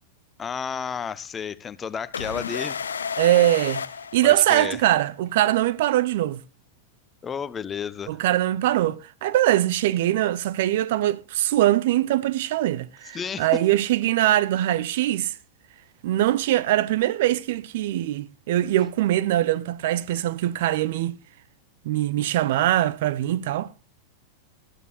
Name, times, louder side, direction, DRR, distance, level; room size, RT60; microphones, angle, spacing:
voice 1, 0.4-2.8 4.2-4.8 7.2-8.1 13.1-13.5, left 7 dB, 20° left, 0.8 m, -31 dB
sound 1, 2.1-4.9, left 6 dB, 70° left, 0.7 m, -32 dB
voice 2, 3.2-3.8 4.1-6.4 8.1-15.4 16.0-21.2 21.8-23.7, right 14 dB, 55° right, 0.7 m, -22 dB
19.0 x 13.0 x 2.4 m
figure-of-eight pair, 90°, 0 cm